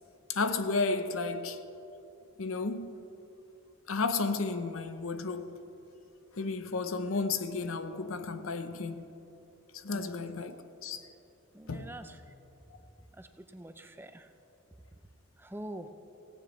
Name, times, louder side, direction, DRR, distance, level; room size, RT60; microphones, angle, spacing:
voice 1, 0.3-1.6 2.4-2.9 3.9-5.6 6.4-9.1 9.8-10.6 10.8-11.0 11.7-11.9, left 3 dB, 85° left, 0.8 m, -32 dB
voice 2, 9.9-10.3 11.5-12.2 13.2-13.3 13.5-14.3 15.4-15.9, right 1 dB, 10° right, 0.4 m, -45 dB
17.0 x 16.5 x 3.2 m
head